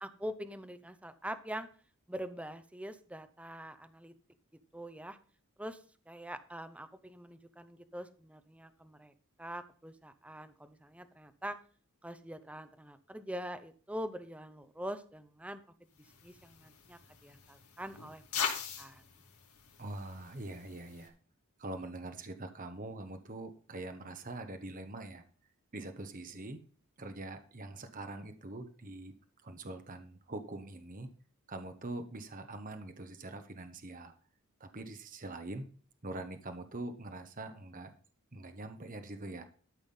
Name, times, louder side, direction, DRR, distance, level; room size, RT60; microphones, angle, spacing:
voice 1, 0.0-1.7 2.1-4.1 4.7-5.2 5.6-9.1 9.4-11.6 12.0-15.6 16.2-18.2 18.5-19.0, equal, 5° right, 10 dB, 0.7 m, -44 dB
sound 1, 16.0-21.1, left 6 dB, 80° left, 2.7 m, -42 dB
voice 2, 19.8-21.1 21.6-25.2 25.7-26.6 27.0-29.1 29.4-31.1 31.5-34.1 34.6-35.7 36.0-37.9 38.3-39.4, right 2 dB, 35° right, 7 dB, 1.0 m, -43 dB
13.0 x 5.7 x 5.4 m, 0.43 s
head